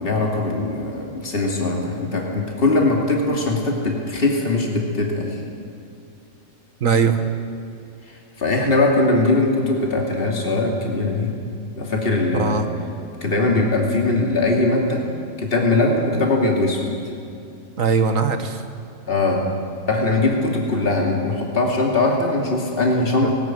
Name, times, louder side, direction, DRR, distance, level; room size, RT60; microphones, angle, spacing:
voice 1, 0.0-5.4 8.4-11.3 11.8-12.7 13.2-15.0 15.4-16.9 19.1-19.4 19.9-23.3, left 2 dB, 45° left, -1 dB, 2.8 m, -20 dB
voice 2, 6.8-7.2 12.3-12.7 17.8-18.6 22.9-23.3, right 5 dB, 80° right, 7 dB, 1.9 m, -20 dB
18.5 x 18.5 x 9.2 m, 2.6 s
omnidirectional pair, 1.4 m